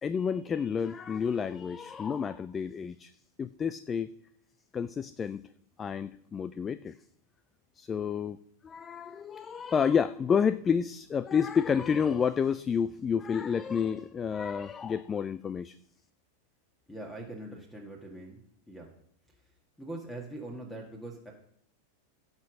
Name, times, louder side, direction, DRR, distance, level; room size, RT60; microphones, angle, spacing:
voice 1, 0.0-3.1 3.4-4.1 4.7-5.5 5.8-7.0 7.8-8.4 8.6-15.8, left 7 dB, 20° left, 16 dB, 0.4 m, -29 dB
voice 2, 16.9-18.4 18.7-18.9 19.8-21.3, right 1 dB, 5° left, 1 dB, 1.8 m, -42 dB
16.0 x 6.0 x 6.3 m, 0.71 s
figure-of-eight pair, 90°, 0 cm